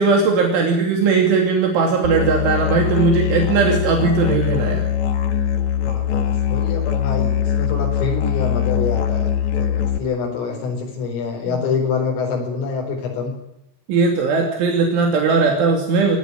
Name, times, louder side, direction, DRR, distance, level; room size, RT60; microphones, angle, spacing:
voice 1, 0.0-4.9 11.5-11.6 13.9-16.2, right 4 dB, 70° right, 2 dB, 5.2 m, -18 dB
Musical instrument, 2.0-10.0, left 9 dB, 55° left, 2.2 m, -21 dB
voice 2, 5.8-13.3, left 5 dB, 90° left, -1 dB, 7.2 m, -26 dB
26.5 x 17.5 x 9.8 m, 0.82 s
omnidirectional pair, 5.7 m